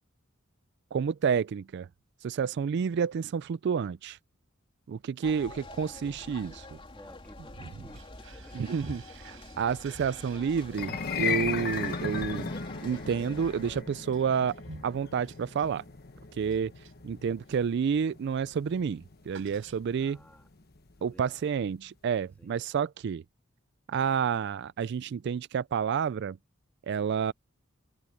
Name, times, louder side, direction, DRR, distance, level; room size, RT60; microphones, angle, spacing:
voice 1, 0.9-1.9 2.2-4.2 4.9-6.8 8.5-12.5 12.8-14.6 14.8-15.8 16.4-16.7 17.0-20.2 21.0-23.2 23.9-26.4 26.9-27.3, right 6 dB, 55° right, 0.3 m, -29 dB
sound 1, 5.2-13.8, left 2 dB, 25° left, 3.5 m, -46 dB
voice 2, 6.9-8.6 20.0-20.5 21.0-21.6 22.4-22.7, equal, 10° left, 2.7 m, -55 dB
sound 2, 7.9-17.8 18.1-18.4 18.6-20.2, right 2 dB, 75° right, 5.3 m, -52 dB
sound 3, 10.7-21.0, left 5 dB, 50° left, 1.3 m, -36 dB
head